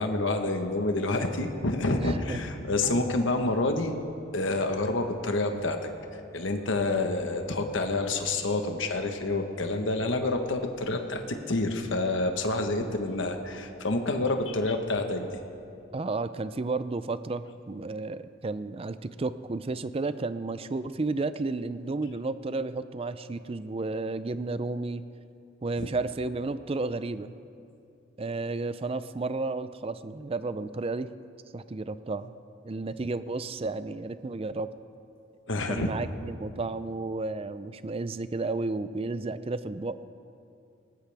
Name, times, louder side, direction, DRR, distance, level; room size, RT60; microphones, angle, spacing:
voice 1, 0.0-3.9 4.3-5.8 6.1-15.4 25.8-25.9 35.5-35.9, left 2 dB, 65° left, 5 dB, 1.2 m, -28 dB
voice 2, 2.0-2.4 2.8-3.1 15.9-25.0 25.6-27.3 28.2-31.1 31.5-32.3 32.6-34.7 35.7-40.1, right 3 dB, 30° right, 13 dB, 0.4 m, -32 dB
19.5 x 19.0 x 3.5 m, 2.6 s
head